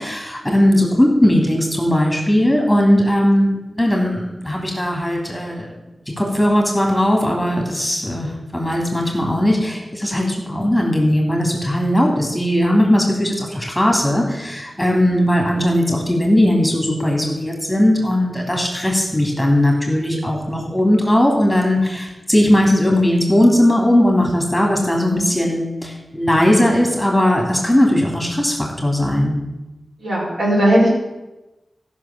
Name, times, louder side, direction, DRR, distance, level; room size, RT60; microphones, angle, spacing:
voice 1, 0.0-5.7 6.2-29.4, left 1 dB, 5° left, 0 dB, 3.2 m, -18 dB
voice 2, 25.0-25.4 30.0-30.9, right 1 dB, 65° right, -4 dB, 4.6 m, -17 dB
13.5 x 6.2 x 7.3 m, 1.0 s
wide cardioid pair, 75°, 0 cm